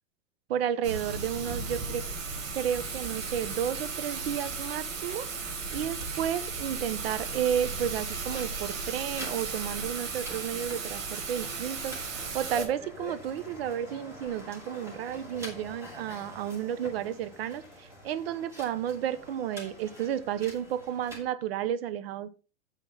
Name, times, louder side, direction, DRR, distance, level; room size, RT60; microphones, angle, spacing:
voice 1, 0.5-2.0 2.5-5.3 5.7-22.3, right 9 dB, 50° right, 15 dB, 1.1 m, -32 dB
Thunder / Rain, 0.8-12.7, right 4 dB, 85° right, 5.4 m, -35 dB
sound 1, 8.3-21.2, left 1 dB, 5° right, 2.5 m, -46 dB
9.2 x 8.0 x 4.0 m, 0.33 s
supercardioid pair, 165°, 38 cm